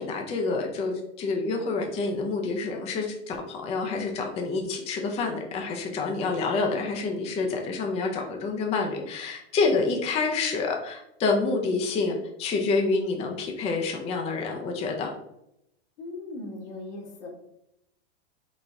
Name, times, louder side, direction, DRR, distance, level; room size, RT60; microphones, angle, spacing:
voice 1, 0.0-15.1, left 4 dB, 20° left, 2 dB, 0.5 m, -28 dB
voice 2, 16.0-17.3, left 2 dB, 80° left, 0 dB, 1.5 m, -38 dB
4.1 x 3.6 x 3.3 m, 0.83 s
supercardioid pair, 130°, 35 cm